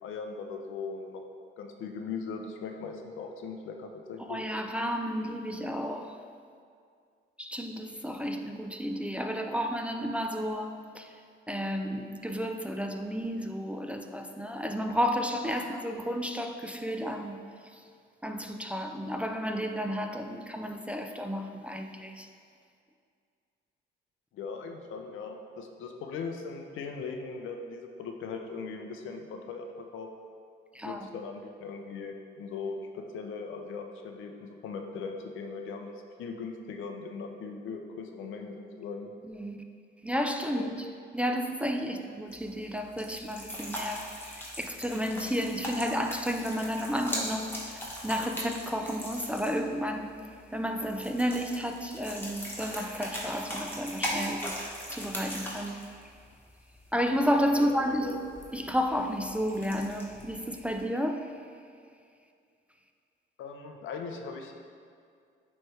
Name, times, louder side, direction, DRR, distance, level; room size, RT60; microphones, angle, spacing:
voice 1, 0.0-1.2 1.6-4.4 24.3-30.1 30.8-35.9 36.2-39.1 40.5-40.7 57.6-58.2 63.4-64.6, left 4 dB, 80° left, 4 dB, 0.6 m, -39 dB
voice 2, 4.3-6.2 7.4-11.2 11.5-17.4 17.7-17.8 18.2-22.3 30.7-31.0 39.3-39.6 40.0-40.9 41.1-56.0 56.9-58.2 58.5-61.3, equal, 5° right, 3 dB, 0.3 m, -32 dB
sound 1, 42.3-60.8, equal, 10° left, 1.4 m, -40 dB
8.8 x 3.2 x 3.2 m, 2.3 s
cardioid pair, 90°, 20 cm